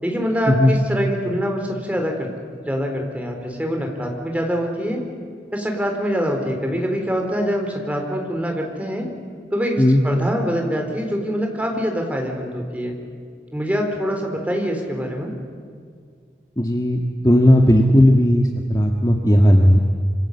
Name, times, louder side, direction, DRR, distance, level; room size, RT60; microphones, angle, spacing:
voice 1, 0.0-5.0 5.5-9.1 9.5-12.9 13.5-15.3, equal, 10° right, 2 dB, 4.1 m, -24 dB
voice 2, 16.6-19.8, equal, 20° left, 2 dB, 1.6 m, -15 dB
27.0 x 26.0 x 8.3 m, 2.1 s
head